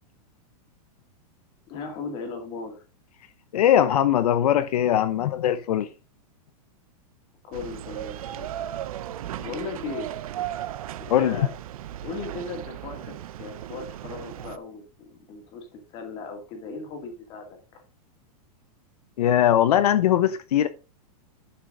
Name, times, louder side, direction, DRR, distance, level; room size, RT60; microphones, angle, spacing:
voice 1, 1.7-2.8 7.4-8.5 9.4-10.1 11.0-11.5 12.0-17.8, left 4 dB, 25° left, 2.4 m, -37 dB
voice 2, 3.5-5.9 11.1-11.5 19.2-20.7, left 11 dB, 75° left, 0.9 m, -20 dB
sound 1, 7.5-14.6, right 12 dB, 65° right, 0.7 m, -36 dB
11.5 x 6.2 x 3.8 m
supercardioid pair, 180°, 20 cm